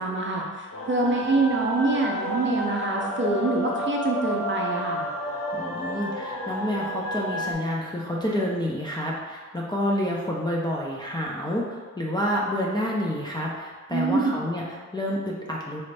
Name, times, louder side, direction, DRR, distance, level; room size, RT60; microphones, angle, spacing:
voice 1, 0.0-5.0 13.9-14.3, right 2 dB, 35° right, -1 dB, 0.5 m, -25 dB
sound 1, 0.7-7.5, equal, 40° left, 0.7 m, -31 dB
voice 2, 5.5-15.8, equal, 15° left, -4 dB, 0.3 m, -28 dB
4.2 x 2.5 x 3.2 m, 1.4 s
wide cardioid pair, 140°, 33 cm